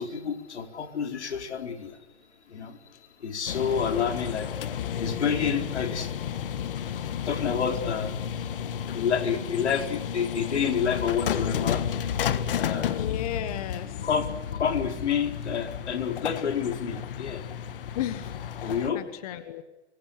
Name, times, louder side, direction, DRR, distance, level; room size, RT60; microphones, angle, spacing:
voice 1, 0.0-1.9 2.5-2.8 3.2-4.5 5.0-6.1 7.3-8.2 8.6-11.8 12.6-13.0 14.0-17.4 18.6-19.0, left 7 dB, 80° left, 5 dB, 4.5 m, -29 dB
sound 1, 3.5-18.9, left 9 dB, 55° left, 1.5 m, -32 dB
voice 2, 12.9-14.1 17.9-19.6, left 11 dB, 35° left, 11 dB, 1.5 m, -35 dB
24.5 x 23.5 x 6.8 m, 1.1 s
hypercardioid pair, 160°, 33 cm